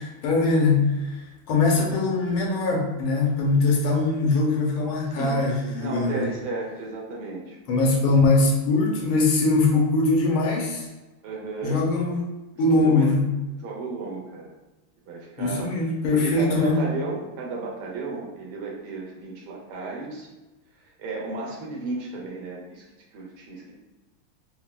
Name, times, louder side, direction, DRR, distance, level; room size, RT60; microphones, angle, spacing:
voice 1, 0.2-0.9 1.5-6.2 7.7-10.8 11.6-12.2 12.6-13.2 15.4-16.8, left 3 dB, 75° left, -1 dB, 1.5 m, -21 dB
voice 2, 5.0-5.4 5.8-7.6 11.2-11.8 12.8-13.1 13.6-14.5 15.1-15.8 16.1-20.3 21.0-22.8 23.1-23.7, right 3 dB, 75° right, -2 dB, 1.5 m, -34 dB
4.3 x 2.0 x 2.3 m, 1.1 s
omnidirectional pair, 2.4 m